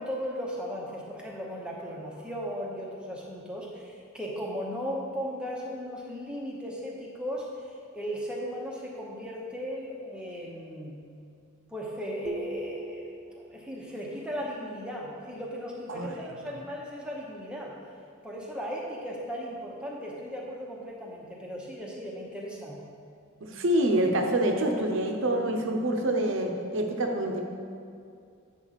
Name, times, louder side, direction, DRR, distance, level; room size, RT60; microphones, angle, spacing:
voice 1, 0.0-7.5 7.9-10.9 11.7-13.1 13.4-17.8 18.2-22.8, equal, 5° right, -3 dB, 0.8 m, -36 dB
sound 1, 12.2-13.9, right 2 dB, 35° right, 0.4 m, -41 dB
voice 2, 23.4-27.4, right 1 dB, 60° right, 3 dB, 0.8 m, -26 dB
8.8 x 6.1 x 4.1 m, 2.4 s
head